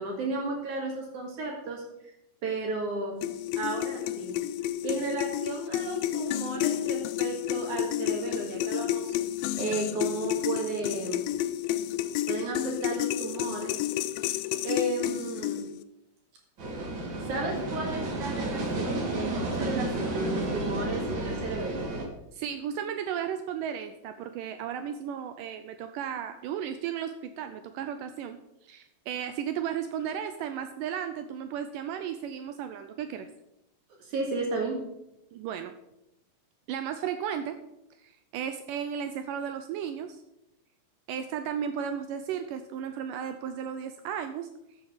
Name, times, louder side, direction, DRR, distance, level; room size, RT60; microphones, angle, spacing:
voice 1, 0.0-1.8 2.4-3.2 3.6-4.4 4.8-9.1 9.6-11.2 12.3-13.7 14.6-15.7 17.3-21.8 34.0-34.8, right 3 dB, 60° right, 0 dB, 3.2 m, -33 dB
sound 1, 3.2-15.8, left 12 dB, 85° left, 2.4 m, -31 dB
sound 2, 16.6-22.0, right 2 dB, 40° right, 2.1 m, -31 dB
voice 2, 22.3-28.4 28.6-33.3 35.3-35.7 36.7-37.6 38.0-40.2 41.1-44.5, right 8 dB, 80° right, 9 dB, 2.1 m, -34 dB
14.0 x 7.2 x 5.1 m, 0.87 s
omnidirectional pair, 4.1 m